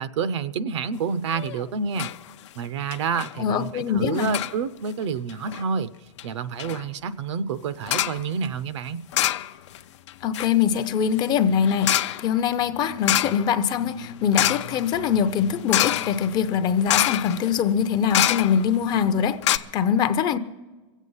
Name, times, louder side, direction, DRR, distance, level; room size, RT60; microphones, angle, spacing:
voice 1, 0.0-2.1 2.6-5.9 6.2-9.0, right 6 dB, 65° right, 0.7 m, -28 dB
sound 1, 1.3-1.6 1.9-2.2 2.5-2.6 2.9-3.3 4.2-4.6 5.3-5.6 6.2-6.3 6.6-6.8 7.9-8.2 9.1-9.8 10.1-18.8 19.1-19.2 19.4-19.6, left 12 dB, 70° left, 0.5 m, -27 dB
voice 2, 3.4-4.3 10.2-20.4, left 8 dB, 25° left, 0.6 m, -23 dB
23.0 x 8.3 x 5.5 m
hypercardioid pair, 145°, 16 cm